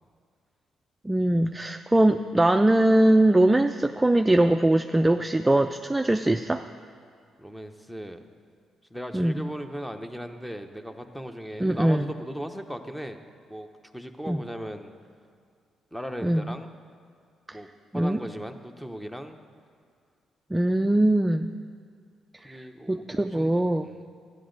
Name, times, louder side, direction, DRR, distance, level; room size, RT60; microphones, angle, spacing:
voice 1, 1.0-6.7 9.1-9.5 11.6-12.1 14.3-14.4 16.2-16.4 17.5-17.6 17.9-18.2 20.5-21.5 22.4-23.9, right 1 dB, 10° right, 6 dB, 0.3 m, -22 dB
voice 2, 7.4-8.2 8.9-13.2 13.5-13.7 13.9-14.9 15.9-16.7 17.5-17.7 17.9-19.4 22.4-24.0, equal, 5° left, 7 dB, 0.7 m, -37 dB
12.5 x 10.0 x 3.9 m, 2.2 s
cardioid pair, 90°, 0 cm